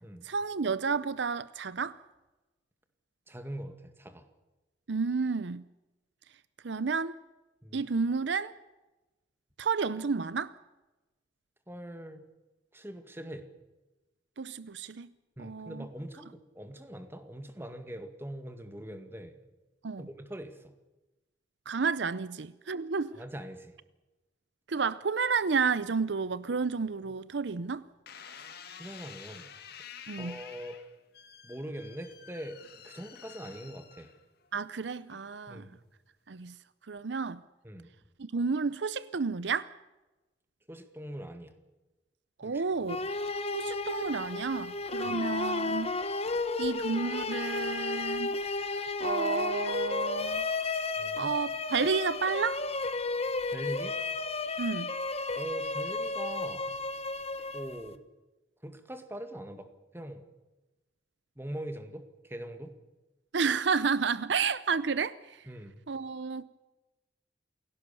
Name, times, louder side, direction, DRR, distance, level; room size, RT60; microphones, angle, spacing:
voice 1, 0.2-2.0 4.9-5.6 6.6-7.2 7.7-8.5 9.6-10.5 14.4-15.1 15.4-15.8 19.8-20.1 21.7-23.2 24.7-27.8 30.1-30.4 34.5-35.7 36.3-36.5 36.9-37.4 38.2-39.7 42.4-43.0 43.5-45.9 46.6-48.4 49.0-50.4 51.2-52.6 54.6-54.9 63.3-65.4 65.9-66.4, right 5 dB, 70° right, 0.7 m, -31 dB
voice 2, 3.3-4.3 7.6-7.9 11.7-12.2 12.7-13.5 15.4-19.4 20.0-20.8 23.1-23.7 28.3-28.5 28.8-29.5 30.2-30.8 31.4-34.1 35.5-35.8 37.6-37.9 40.7-41.5 42.4-43.1 45.0-45.2 51.0-51.3 53.5-54.0 55.3-56.8 57.5-58.0 58.6-60.3 61.4-62.7 65.5-65.8, right 1 dB, 15° right, 2.0 m, -42 dB
sound 1, 28.1-34.5 35.1-35.6, left 7 dB, 60° left, 2.1 m, -49 dB
sound 2, 42.9-58.0, left 3 dB, 35° left, 1.2 m, -33 dB
28.0 x 17.5 x 7.1 m
head